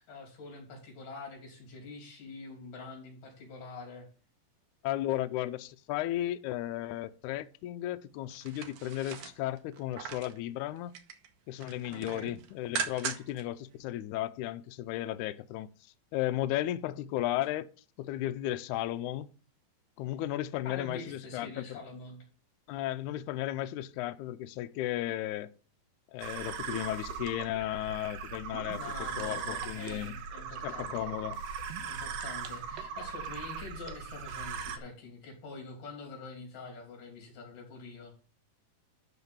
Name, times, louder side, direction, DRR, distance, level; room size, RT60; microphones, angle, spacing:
voice 1, 0.0-4.1 11.9-12.3 20.6-22.2 28.8-31.1 31.8-38.1, left 3 dB, 65° left, 4.6 m, -45 dB
voice 2, 4.8-10.9 11.5-15.7 16.1-17.7 18.0-19.3 20.0-21.8 22.7-25.5 26.1-30.1 30.6-31.4, left 13 dB, 85° left, 1.7 m, -34 dB
sound 1, 8.3-10.4 10.8-11.3 11.6-13.4 13.8-13.9, right 7 dB, 65° right, 2.2 m, -39 dB
sound 2, 26.2-34.8, right 6 dB, 85° right, 2.8 m, -39 dB
12.0 x 4.0 x 7.1 m
omnidirectional pair, 4.1 m